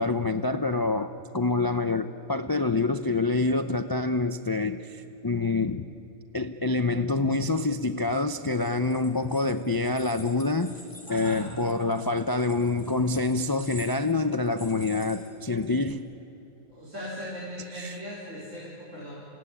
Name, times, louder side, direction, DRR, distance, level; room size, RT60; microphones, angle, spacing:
voice 1, 0.0-5.9 6.3-10.8 11.1-16.0 17.7-17.9, left 3 dB, 30° left, 9 dB, 0.4 m, -26 dB
sound 1, 8.6-15.9, equal, 15° right, 2.6 m, -49 dB
voice 2, 11.1-11.5 16.7-19.1, left 1 dB, 60° right, -7 dB, 4.9 m, -38 dB
27.5 x 17.5 x 9.9 m, 3.0 s
omnidirectional pair, 1.5 m